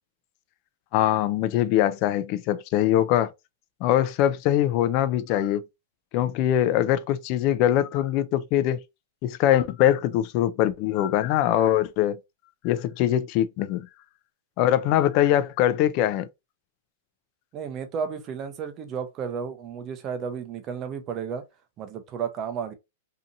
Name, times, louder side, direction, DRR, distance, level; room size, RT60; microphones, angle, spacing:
voice 1, 0.9-3.3 3.8-5.6 6.1-8.8 9.2-12.2 12.6-13.9 14.6-16.3, left 12 dB, 40° left, 0.3 m, -22 dB
voice 2, 17.5-21.4 21.8-22.7, right 6 dB, 30° right, 0.6 m, -32 dB
2.7 x 2.5 x 2.5 m
hypercardioid pair, 145°, 0 cm